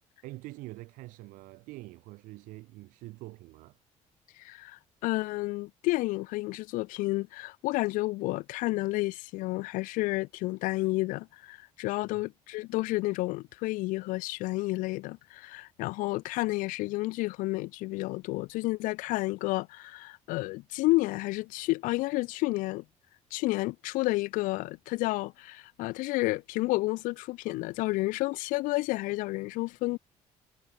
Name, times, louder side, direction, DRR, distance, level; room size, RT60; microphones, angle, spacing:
voice 1, 0.2-3.8 12.1-12.2, right 20 dB, 90° right, 5.2 m, -45 dB
voice 2, 4.4-22.8 23.3-30.0, left 21 dB, 90° left, 1.5 m, -31 dB
cardioid pair, 95°, 13 cm